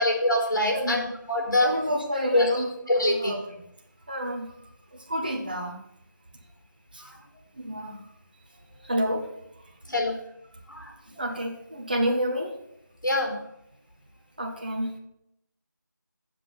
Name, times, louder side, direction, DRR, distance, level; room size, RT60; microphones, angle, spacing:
voice 1, 0.0-1.7 2.3-2.5 2.9-3.3 7.0-7.1 9.9-10.1 10.7-10.9 13.0-13.4, left 1 dB, 75° left, 0 dB, 3.3 m, -24 dB
voice 2, 0.7-1.0 1.5-2.7 3.0-3.6 4.1-4.5 4.9-5.8 6.9-7.1 7.5-8.0 8.8-9.3 11.2-12.5 14.4-14.9, equal, 25° right, 1 dB, 1.1 m, -29 dB
7.6 x 7.4 x 5.6 m, 0.79 s
figure-of-eight pair, 175°, 11 cm